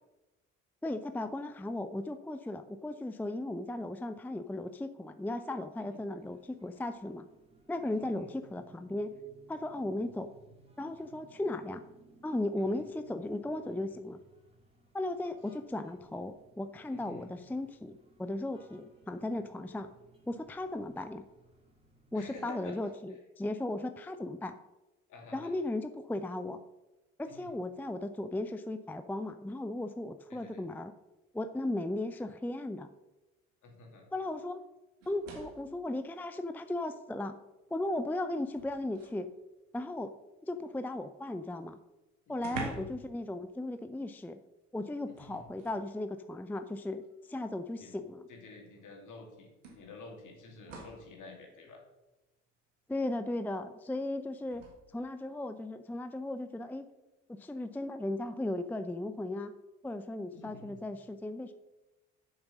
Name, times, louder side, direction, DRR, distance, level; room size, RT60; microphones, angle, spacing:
voice 1, 0.8-7.3 7.7-9.1 9.5-10.3 10.8-11.8 12.2-14.2 14.9-19.9 20.3-21.2 22.1-24.6 25.3-26.6 27.2-30.9 31.3-32.9 34.1-34.6 35.1-37.3 37.7-39.3 39.7-40.1 40.5-41.8 42.3-44.4 44.7-48.2 52.9-54.6 54.9-56.9 57.3-59.5 59.8-61.5, left 1 dB, 5° left, 9 dB, 0.5 m, -36 dB
sound 1, 6.2-22.4, right 3 dB, 15° right, 2.6 m, -62 dB
voice 2, 7.8-8.3 12.6-12.8 16.9-17.3 22.1-22.8 23.1-23.2 25.1-25.5 27.3-27.5 30.3-30.6 33.6-34.0 42.4-42.6 45.2-45.5 47.8-47.9 48.3-49.5 49.7-51.8 60.3-60.8, left 3 dB, 55° left, 1 dB, 2.7 m, -50 dB
sound 2, 35.0-35.8 37.1-37.2 37.7-39.3 41.4-41.5 41.7-41.8 42.4-43.1 43.4-43.6 45.1-45.9 47.0-47.1 48.7-48.8 49.6-51.1 54.4-54.7, right 3 dB, 90° right, 1.6 m, -46 dB
7.1 x 6.5 x 6.2 m, 1.0 s
hypercardioid pair, 55°, 37 cm